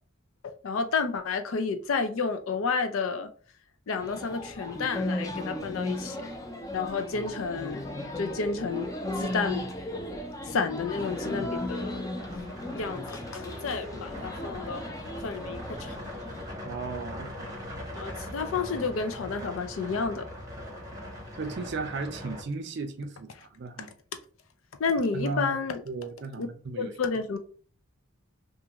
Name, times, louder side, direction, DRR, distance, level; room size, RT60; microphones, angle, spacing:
voice 1, 0.4-3.3 3.9-6.2 6.7-7.8 8.2-8.9 9.2-9.6 10.5-12.1 12.7-14.8 15.2-16.0 17.9-20.3 24.8-25.8 26.4-26.5 26.8-27.4, left 5 dB, 80° left, 0.4 m, -30 dB
sound 1, 4.0-16.5, left 1 dB, 15° left, 0.3 m, -36 dB
sound 2, 11.0-22.4, left 1 dB, 15° right, 0.7 m, -41 dB
voice 2, 16.6-17.6 21.4-23.9 25.1-25.6 25.9-26.9, right 3 dB, 55° right, 0.5 m, -35 dB
2.5 x 2.4 x 2.8 m
head